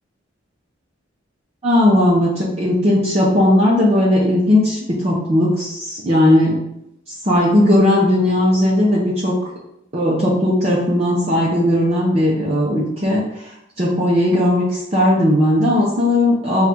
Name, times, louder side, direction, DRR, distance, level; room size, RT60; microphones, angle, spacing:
voice 1, 1.6-6.6 7.2-9.4 9.9-13.2 13.8-16.7, left 1 dB, 30° right, -6 dB, 0.6 m, -16 dB
3.8 x 2.3 x 4.4 m, 0.81 s
head